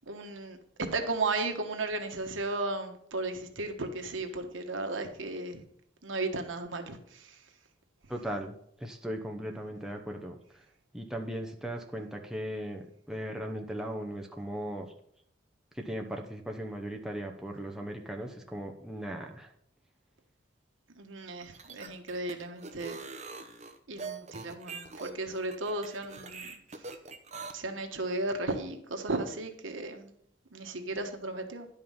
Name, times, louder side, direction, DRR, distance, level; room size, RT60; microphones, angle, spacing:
voice 1, 0.1-5.6 6.0-7.5 20.9-23.0 23.9-26.9 27.5-30.2 30.5-31.7, right 2 dB, 90° right, 5 dB, 1.3 m, -35 dB
voice 2, 8.1-10.4 10.9-14.9 15.8-19.5, equal, 5° right, 1 dB, 0.9 m, -38 dB
sound 1, 21.4-27.5, right 4 dB, 35° right, 0.8 m, -43 dB
10.5 x 5.6 x 5.6 m, 0.68 s
head